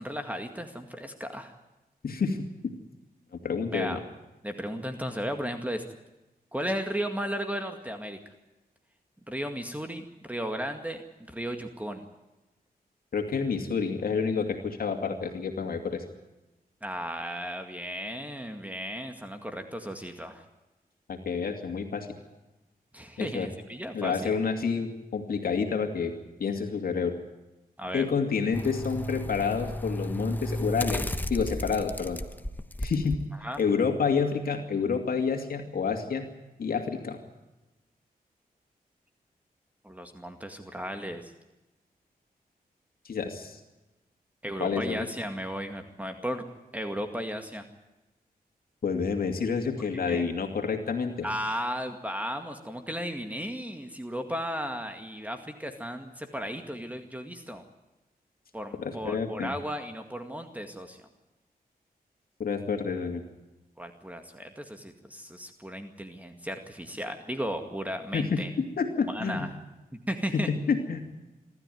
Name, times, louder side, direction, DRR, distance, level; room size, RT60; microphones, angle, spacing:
voice 1, 0.0-1.5 3.7-4.0 4.4-5.8 6.5-8.2 9.3-12.1 16.8-20.4 22.9-24.3 27.8-28.0 33.4-33.6 39.8-41.3 44.4-46.4 46.7-47.6 50.1-50.2 51.2-57.6 58.5-61.0 63.8-68.5 69.1-69.5 69.9-70.5, equal, 10° right, 6 dB, 2.0 m, -35 dB
voice 2, 2.0-2.7 3.4-4.0 13.1-16.0 21.1-22.1 23.2-23.5 23.9-26.1 26.4-27.1 27.9-31.0 31.3-32.2 32.8-33.2 33.6-36.3 36.6-37.2 43.0-43.6 44.6-45.1 48.8-51.3 58.8-59.5 62.4-63.2 68.1-69.5 70.3-71.0, left 5 dB, 70° left, 4 dB, 2.6 m, -29 dB
sound 1, 28.5-33.2 33.6-33.7, equal, 10° left, 1.2 m, -34 dB
26.0 x 13.0 x 9.3 m, 1.0 s
cardioid pair, 80°, 16 cm